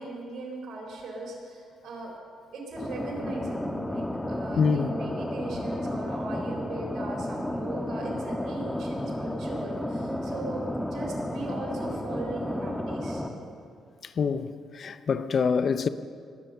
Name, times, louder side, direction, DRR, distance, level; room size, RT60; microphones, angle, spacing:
voice 1, 0.0-2.2 2.5-13.2, right 2 dB, 65° right, 4.0 m, -39 dB
sound 1, 2.8-13.3, left 1 dB, 10° left, 1.4 m, -32 dB
voice 2, 4.6-4.9 14.0-15.9, left 5 dB, 50° left, 0.6 m, -26 dB
20.5 x 8.3 x 6.8 m
cardioid pair, 90°, 0 cm